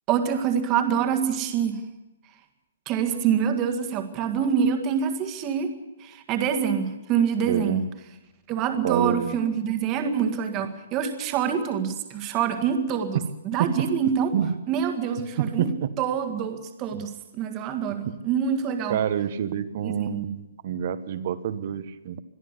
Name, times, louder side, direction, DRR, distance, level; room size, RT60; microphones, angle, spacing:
voice 1, 0.1-1.8 2.9-5.7 6.0-7.8 8.5-13.2 13.5-14.3 14.7-15.7 16.0-19.0 19.8-20.2, right 7 dB, 15° right, 7 dB, 1.8 m, -26 dB
voice 2, 7.4-7.9 8.8-9.4 13.6-13.9 14.3-14.5 15.4-15.9 17.0-17.1 18.0-18.2 18.9-22.2, right 9 dB, 35° right, 13 dB, 1.2 m, -27 dB
22.5 x 13.5 x 9.8 m, 0.91 s
hypercardioid pair, 175°, 0 cm